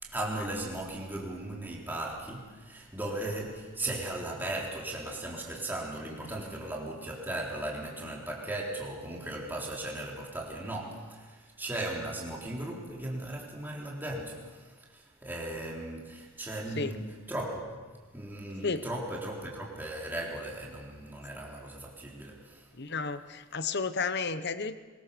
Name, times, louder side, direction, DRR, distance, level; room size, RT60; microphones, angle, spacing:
voice 1, 0.0-22.7, right 1 dB, 10° right, -3 dB, 3.8 m, -37 dB
voice 2, 22.8-24.8, left 4 dB, 50° left, 12 dB, 1.0 m, -32 dB
23.0 x 22.0 x 7.0 m, 1.4 s
head